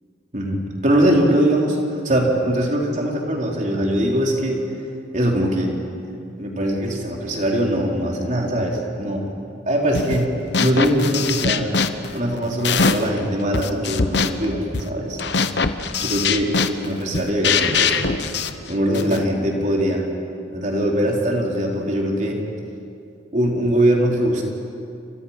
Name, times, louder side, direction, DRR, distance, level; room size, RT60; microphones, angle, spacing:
voice 1, 0.3-4.6 5.1-5.7 6.4-9.3 9.7-10.3 10.6-11.7 12.1-15.2 16.0-18.2 18.7-20.1 20.5-22.4 23.3-24.4, right 1 dB, 40° right, -1 dB, 3.9 m, -21 dB
sound 1, 9.9-10.3 10.5-13.2 13.5-19.2, left 5 dB, 60° left, 1.1 m, -23 dB
29.5 x 25.0 x 5.8 m, 2.5 s
head